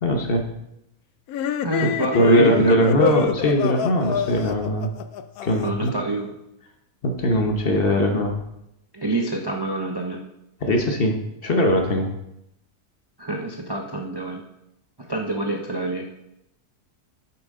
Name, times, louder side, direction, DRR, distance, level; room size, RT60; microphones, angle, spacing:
voice 1, 0.0-0.5 2.1-4.9 5.4-5.9 7.0-8.4 10.6-11.2 11.4-12.1, equal, 45° left, 3 dB, 1.0 m, -20 dB
sound 1, 1.3-5.9, left 9 dB, 75° left, 1.1 m, -26 dB
voice 2, 1.6-3.1 5.6-6.3 8.9-10.2 13.2-14.4 15.1-16.1, right 2 dB, 30° right, 1 dB, 0.5 m, -26 dB
9.2 x 7.4 x 3.7 m, 0.85 s
omnidirectional pair, 1.6 m